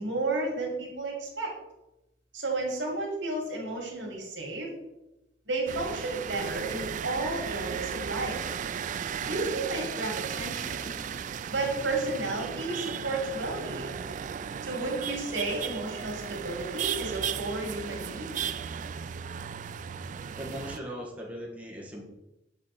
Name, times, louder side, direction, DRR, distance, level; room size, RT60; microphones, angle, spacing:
voice 1, 0.0-1.5 2.3-4.7 5.5-8.4 9.2-10.9 11.5-13.9 14.6-18.3, right 2 dB, 80° right, 0 dB, 2.3 m, -32 dB
sound 1, 5.7-20.8, right 7 dB, 45° right, 0.3 m, -35 dB
voice 2, 20.3-22.0, equal, 10° right, -3 dB, 1.4 m, -39 dB
7.8 x 4.1 x 5.9 m, 0.93 s
head